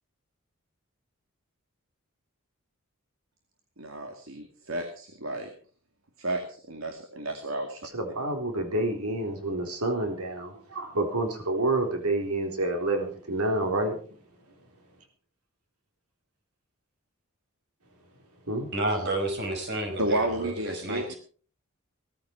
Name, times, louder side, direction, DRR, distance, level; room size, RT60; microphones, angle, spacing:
voice 1, 3.8-5.5 6.2-7.8 20.0-21.1, right 1 dB, 65° right, 5 dB, 2.4 m, -31 dB
voice 2, 7.9-14.0 18.5-18.7, right 2 dB, 85° right, 3 dB, 3.9 m, -28 dB
voice 3, 18.7-21.2, right 1 dB, 50° right, 5 dB, 5.1 m, -31 dB
17.5 x 14.5 x 4.6 m, 0.42 s
head